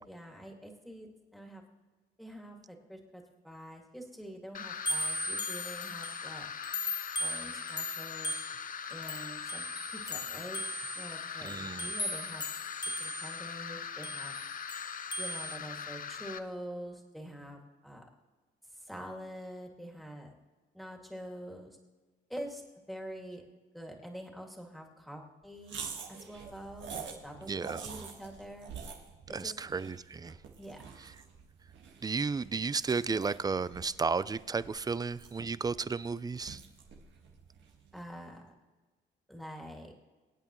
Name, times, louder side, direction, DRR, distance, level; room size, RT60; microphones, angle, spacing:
voice 1, 0.0-1.6 2.2-6.5 7.2-8.4 8.9-10.6 11.0-12.4 13.0-14.3 15.2-18.0 18.7-20.3 20.7-21.8 22.3-23.4 23.7-25.7 26.1-28.7 29.4-29.6 30.6-30.8 37.9-38.5 39.3-40.0, equal, ahead, 0 dB, 2.2 m, -46 dB
sound 1, 4.5-16.4, left 7 dB, 45° left, 0.7 m, -41 dB
sound 2, 4.8-6.3 6.6-13.5 14.0-15.6, left 1 dB, 20° left, 1.0 m, -38 dB
voice 2, 11.4-11.9 27.5-27.9 29.3-30.3 32.0-36.6, right 4 dB, 20° right, 17 dB, 0.4 m, -33 dB
sound 3, 25.6-38.1, right 6 dB, 70° right, 1.7 m, -47 dB
24.5 x 8.6 x 3.1 m, 1.3 s
cardioid pair, 90°, 20 cm